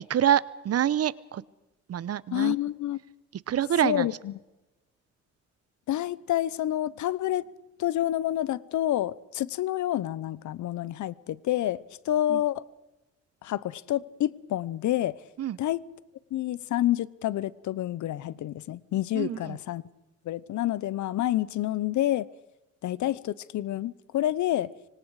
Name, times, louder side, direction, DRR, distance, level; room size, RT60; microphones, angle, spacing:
voice 1, 0.1-1.4 1.9-2.5 3.5-4.1 12.3-12.4 15.4-15.6 19.1-19.6, right 10 dB, 55° right, 0.9 m, -26 dB
voice 2, 2.3-3.0 3.8-4.3 5.9-7.4 7.8-12.6 13.4-15.2 15.6-15.8 16.3-19.8 20.2-22.3 22.8-24.7, left 13 dB, 75° left, 0.9 m, -28 dB
25.0 x 25.0 x 4.9 m
cardioid pair, 90°, 30 cm